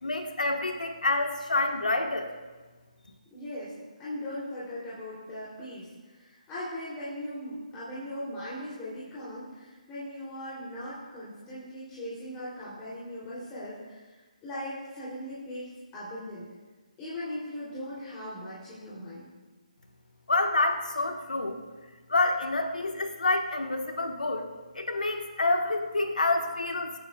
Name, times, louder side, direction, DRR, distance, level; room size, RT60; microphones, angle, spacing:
voice 1, 0.0-2.3 20.3-21.6 22.1-24.4 24.7-26.9, left 2 dB, 70° left, 4 dB, 1.4 m, -27 dB
voice 2, 3.3-3.7 4.0-16.4 17.0-19.3, left 1 dB, 15° left, -9 dB, 3.0 m, -39 dB
24.5 x 9.0 x 2.4 m, 1.3 s
figure-of-eight pair, 145°, 4 cm